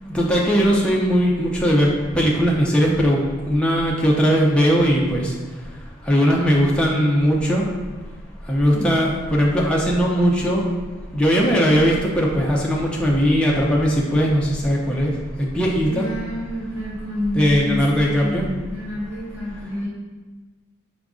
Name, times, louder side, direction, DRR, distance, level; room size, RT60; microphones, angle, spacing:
voice 1, 0.1-5.3 6.1-7.6 8.5-10.6 11.1-15.1 15.4-16.1 17.4-18.4, equal, 5° left, -3 dB, 0.4 m, -19 dB
voice 2, 15.8-19.9, equal, 10° right, -10 dB, 1.1 m, -28 dB
4.8 x 2.5 x 3.5 m, 1.3 s
head